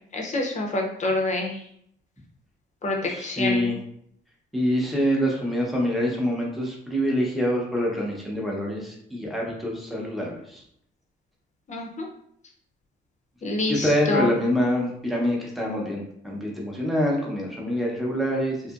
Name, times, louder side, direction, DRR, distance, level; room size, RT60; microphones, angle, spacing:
voice 1, 0.1-1.5 2.8-3.7 11.7-12.1 13.4-14.3, left 2 dB, 35° left, 1 dB, 0.6 m, -27 dB
voice 2, 3.0-3.8 4.5-10.6 13.7-18.7, equal, ahead, -3 dB, 0.8 m, -25 dB
2.8 x 2.4 x 2.4 m, 0.70 s
cardioid pair, 90°, 20 cm